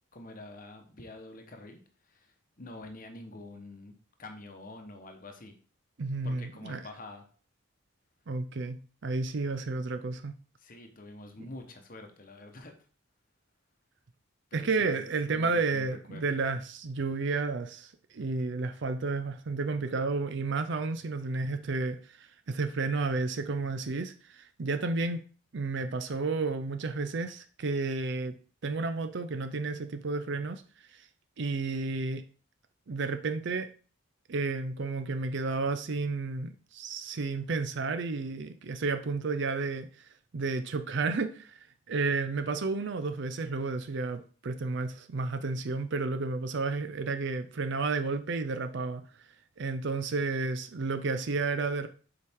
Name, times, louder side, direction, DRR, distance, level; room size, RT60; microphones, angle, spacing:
voice 1, 0.1-1.8 2.1-3.9 4.2-5.5 6.2-7.2 10.6-12.7 14.5-16.2, left 2 dB, 40° left, 1.0 m, -47 dB
voice 2, 6.0-6.9 8.3-10.3 14.5-25.2 25.5-28.3 28.6-31.1 31.4-32.2 32.9-33.7 34.3-49.3 49.6-51.9, right 3 dB, 55° right, 0.5 m, -32 dB
7.0 x 4.7 x 3.6 m
head